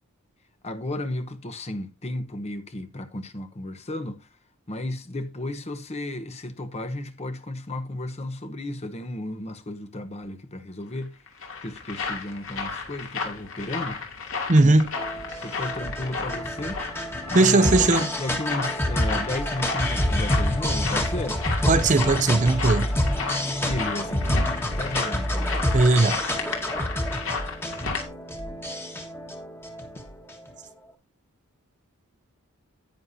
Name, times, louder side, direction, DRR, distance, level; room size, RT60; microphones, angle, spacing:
voice 1, 0.6-4.3 4.7-11.2 11.6-14.0 14.6-14.8 15.4-16.8 17.3-21.4 23.6-24.4 24.7-25.6, left 1 dB, 30° left, 0.9 m, -33 dB
sound 1, 11.0-28.0, left 4 dB, 60° left, 2.6 m, -33 dB
voice 2, 14.5-14.9 17.3-18.1 21.7-22.9 25.7-26.2, right 2 dB, 35° right, 0.6 m, -18 dB
sound 2, 15.0-30.5, left 1 dB, 10° left, 1.5 m, -28 dB
10.5 x 9.6 x 2.7 m
head